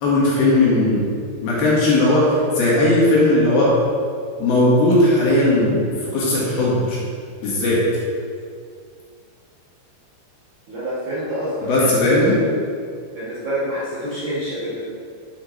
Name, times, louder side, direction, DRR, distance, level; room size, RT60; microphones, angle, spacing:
voice 1, 0.0-1.1 1.4-3.7 4.4-5.8 6.1-7.0 7.4-7.8 11.7-12.3, left 1 dB, 65° left, -7 dB, 3.5 m, -17 dB
voice 2, 10.7-12.5 13.1-14.8, equal, 60° right, -10 dB, 2.1 m, -27 dB
8.4 x 7.7 x 3.3 m, 2.2 s
omnidirectional pair, 5.2 m